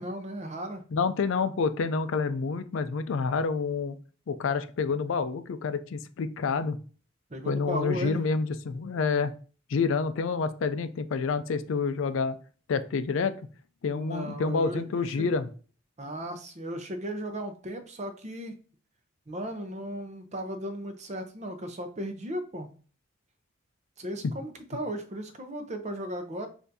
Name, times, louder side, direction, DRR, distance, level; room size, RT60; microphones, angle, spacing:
voice 1, 0.0-0.8 7.3-8.2 13.8-15.3 16.0-18.5 19.3-22.7 24.0-26.5, equal, 35° right, 6 dB, 0.6 m, -36 dB
voice 2, 0.9-4.0 4.3-6.8 7.4-9.3 9.7-12.4 12.7-13.3 13.8-15.5, left 4 dB, 70° left, 11 dB, 0.4 m, -28 dB
6.5 x 2.6 x 2.7 m, 0.39 s
head